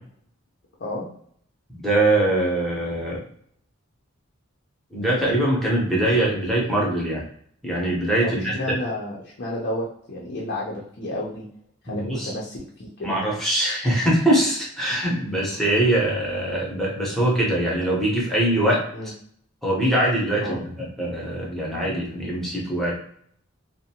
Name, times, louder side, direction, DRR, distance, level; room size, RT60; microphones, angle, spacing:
voice 1, 1.7-3.2 4.9-7.2 7.6-8.5 11.9-12.3 13.0-18.8 19.6-22.9, right 1 dB, ahead, -5 dB, 0.7 m, -22 dB
voice 2, 8.2-11.5 11.8-13.1 18.9-19.1 20.4-20.6, left 1 dB, 55° left, -5 dB, 0.6 m, -31 dB
2.5 x 2.1 x 2.8 m, 0.64 s
head